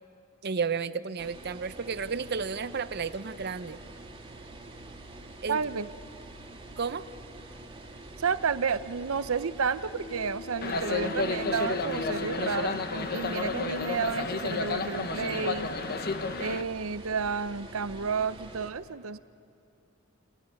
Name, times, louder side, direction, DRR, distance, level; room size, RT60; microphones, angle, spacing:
voice 1, 0.4-3.8 5.4-5.6 6.8-7.0, right 5 dB, 50° right, 13 dB, 0.7 m, -32 dB
sound 1, 1.2-18.7, right 2 dB, 25° right, 2.1 m, -46 dB
voice 2, 5.5-5.9 8.2-15.7 16.4-19.2, right 5 dB, 85° right, 13 dB, 0.7 m, -31 dB
sound 2, 9.7-14.2, left 5 dB, 30° left, 1.3 m, -42 dB
sound 3, 10.6-16.6, left 3 dB, 50° left, 1.1 m, -31 dB
29.5 x 15.0 x 9.9 m, 2.6 s
head